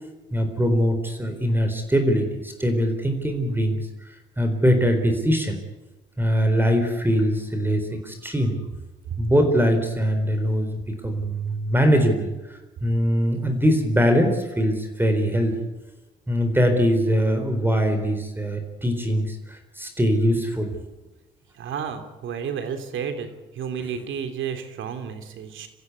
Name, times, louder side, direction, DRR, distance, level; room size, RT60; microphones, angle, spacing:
voice 1, 0.3-3.9 4.4-5.6 6.2-8.6 9.2-15.6 16.3-20.7, equal, 10° right, 6 dB, 4.0 m, -22 dB
voice 2, 21.6-23.3 23.5-25.7, right 7 dB, 75° right, 8 dB, 3.3 m, -31 dB
27.5 x 15.0 x 8.3 m, 1.1 s
cardioid pair, 90°, 20 cm